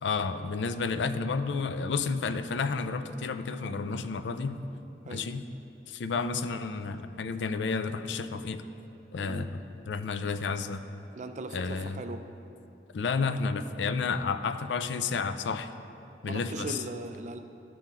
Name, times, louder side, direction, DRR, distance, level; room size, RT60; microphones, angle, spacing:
voice 1, 0.0-4.6 5.1-5.4 5.9-8.6 9.1-9.6 9.9-10.8 11.5-12.0 12.9-15.7 16.2-16.8, left 4 dB, 80° left, 10 dB, 0.4 m, -31 dB
voice 2, 11.1-12.3 16.2-17.4, right 2 dB, 40° right, 8 dB, 0.4 m, -39 dB
13.0 x 5.7 x 3.6 m, 2.8 s
head